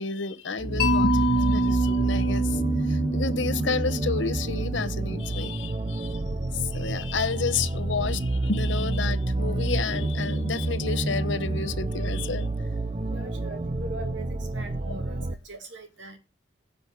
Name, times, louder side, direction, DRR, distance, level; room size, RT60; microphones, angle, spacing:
voice 1, 0.0-2.6 2.9-6.2 6.5-12.5, left 4 dB, 75° left, 0.9 m, -31 dB
sound 1, 0.6-15.3, right 2 dB, 30° right, 0.6 m, -28 dB
Mallet percussion, 0.8-4.8, right 1 dB, 55° left, 1.5 m, -26 dB
voice 2, 13.1-16.2, right 2 dB, 75° right, 2.7 m, -41 dB
10.5 x 5.2 x 8.1 m
head